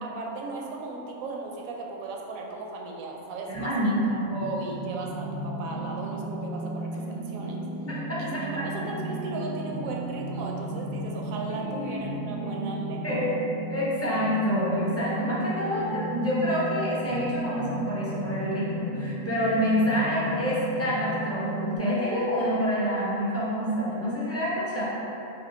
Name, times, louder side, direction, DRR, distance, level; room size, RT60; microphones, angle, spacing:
voice 1, 0.0-7.6 8.2-13.3, right 3 dB, 80° right, 0 dB, 1.0 m, -37 dB
voice 2, 3.5-4.4 7.9-8.6 11.7-12.0 12.2-12.7 13.0-13.3 13.7-24.8, equal, 20° left, -8 dB, 0.3 m, -27 dB
sound 1, 4.4-21.8, right 2 dB, 55° left, 0.9 m, -34 dB
3.5 x 2.8 x 3.7 m, 2.9 s
omnidirectional pair, 1.4 m